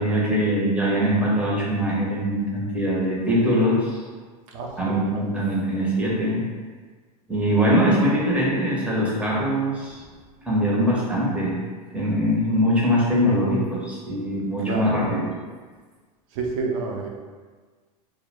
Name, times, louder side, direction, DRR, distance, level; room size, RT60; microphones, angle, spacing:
voice 1, 0.0-4.0 4.8-6.4 7.3-10.0 10.5-11.6 11.9-15.3, equal, 5° right, -6 dB, 0.6 m, -22 dB
voice 2, 4.5-5.2 14.7-14.9 16.3-17.1, right 4 dB, 55° right, 0 dB, 0.5 m, -29 dB
2.1 x 2.0 x 3.2 m, 1.4 s
hypercardioid pair, 115°, 20 cm